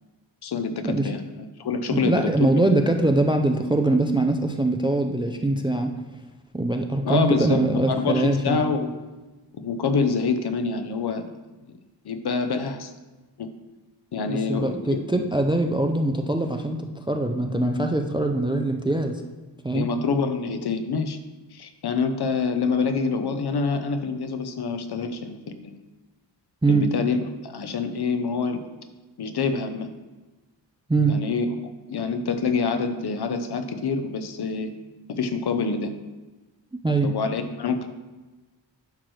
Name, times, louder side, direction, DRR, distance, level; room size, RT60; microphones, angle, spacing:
voice 1, 0.4-2.5 7.0-9.0 9.6-11.3 12.0-12.9 13.4-13.5 14.1-15.0 19.7-21.2 21.5-25.8 26.7-28.7 29.2-29.9 31.1-31.5 31.9-34.7 35.2-35.9 37.0-37.9, left 4 dB, 60° left, 8 dB, 0.7 m, -26 dB
voice 2, 1.9-5.9 6.5-8.6 14.3-19.2 19.6-19.9 26.6-26.9 30.9-31.2 36.8-37.1, right 2 dB, 10° right, 5 dB, 0.3 m, -23 dB
10.5 x 6.2 x 3.1 m, 1.2 s
wide cardioid pair, 175°, 45 cm